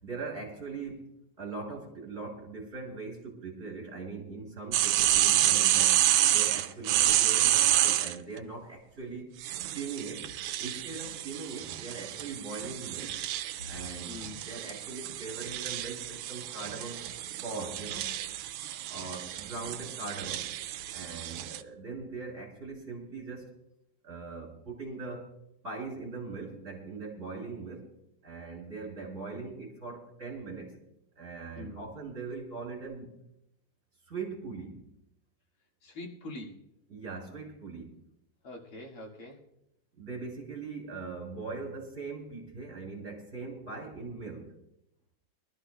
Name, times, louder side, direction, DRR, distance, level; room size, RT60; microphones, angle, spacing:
voice 1, 0.0-9.3 9.7-10.3 10.6-13.2 13.7-17.0 17.4-18.2 18.9-20.5 20.9-23.5 24.0-25.3 25.6-27.9 28.2-30.8 31.2-33.1 34.1-34.8 36.9-37.9 40.0-44.6, right 4 dB, 30° right, 0 dB, 3.2 m, -41 dB
sound 1, 4.7-8.2 9.4-21.6, right 12 dB, 85° right, 1.5 m, -29 dB
voice 2, 14.1-14.4 31.6-31.9 35.8-36.6 38.4-39.4, left 2 dB, 80° left, -1 dB, 2.9 m, -44 dB
23.5 x 12.5 x 2.2 m, 0.81 s
omnidirectional pair, 2.4 m